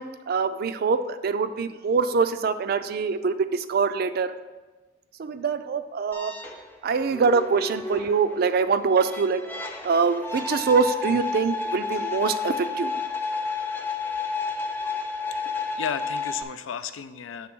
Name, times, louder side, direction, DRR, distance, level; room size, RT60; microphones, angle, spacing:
voice 1, 0.0-4.3 5.2-6.3 6.8-9.4 9.8-12.9, right 5 dB, 50° right, 11 dB, 0.4 m, -24 dB
sound 1, 6.1-16.4, left 4 dB, 10° left, 0.5 m, -31 dB
voice 2, 15.3-17.5, left 7 dB, 85° left, 12 dB, 0.4 m, -34 dB
7.3 x 3.5 x 6.0 m, 1.2 s
head